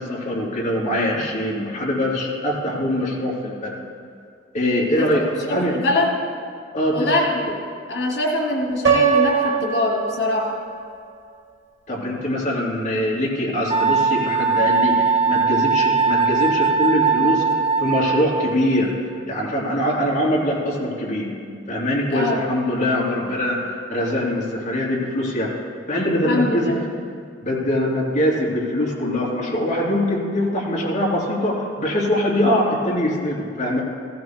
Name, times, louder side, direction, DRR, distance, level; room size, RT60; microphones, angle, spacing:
voice 1, 0.0-3.8 4.5-5.7 6.7-7.1 11.9-18.9 19.3-21.3 21.7-25.5 25.9-26.8 27.4-33.8, left 1 dB, 40° left, -4 dB, 3.0 m, -23 dB
voice 2, 5.5-6.1 6.9-7.2 7.9-10.5 22.1-22.4 26.3-26.8, left 1 dB, 90° left, -1 dB, 2.5 m, -22 dB
Piano, 8.8-10.8, right 6 dB, 90° right, 1.1 m, -21 dB
Wind instrument woodwind instrument, 13.7-18.7, right 5 dB, 45° right, 2.1 m, -20 dB
16.0 x 15.5 x 2.2 m, 2.2 s
head